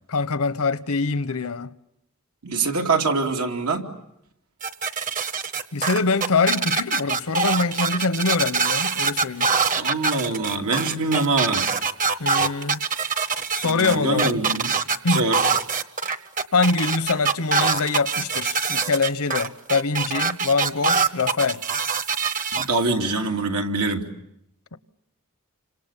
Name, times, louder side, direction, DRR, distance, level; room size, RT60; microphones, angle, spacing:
voice 1, 0.1-1.7 5.7-9.5 12.2-12.9 13.5-14.4 15.0-15.3 16.5-21.6 24.7-24.8, left 4 dB, 75° left, 1.0 m, -24 dB
voice 2, 2.4-3.9 9.8-11.6 13.6-14.7 15.1-15.4 22.5-24.1, right 3 dB, 90° right, 2.8 m, -24 dB
sound 1, 4.6-22.7, right 5 dB, 40° right, 1.0 m, -24 dB
29.5 x 26.0 x 7.3 m
head